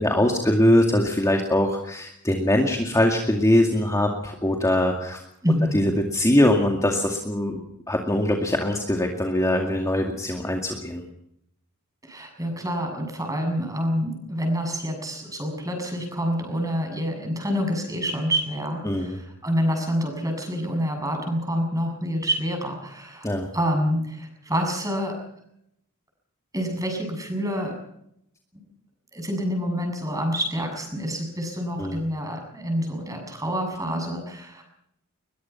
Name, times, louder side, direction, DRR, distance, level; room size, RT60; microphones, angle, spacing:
voice 1, 0.0-5.2 5.7-7.6 7.9-11.0 18.8-19.2 23.2-23.5 31.8-32.0, left 1 dB, 15° left, 2 dB, 2.3 m, -22 dB
voice 2, 5.4-5.8 12.0-23.3 23.5-25.2 26.5-27.7 28.5-28.7 29.1-34.6, equal, 15° right, 4 dB, 7.3 m, -27 dB
22.0 x 21.5 x 5.8 m, 0.77 s
head